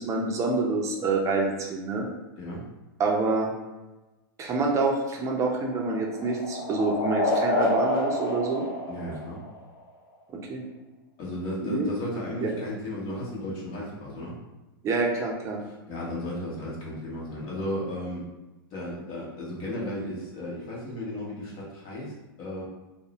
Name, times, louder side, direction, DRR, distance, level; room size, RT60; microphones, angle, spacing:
voice 1, 0.0-2.1 3.0-3.5 4.4-8.6 10.5-10.6 11.6-11.9 12.4-12.5 14.8-15.6, right 3 dB, 25° right, 0 dB, 0.5 m, -27 dB
sound 1, 5.1-9.8, left 1 dB, 75° left, 0.6 m, -29 dB
voice 2, 8.9-9.4 11.2-14.4 15.6-18.2 18.7-22.6, left 1 dB, 45° left, -5 dB, 1.0 m, -34 dB
2.6 x 2.0 x 2.9 m, 1.1 s
hypercardioid pair, 120°, 12 cm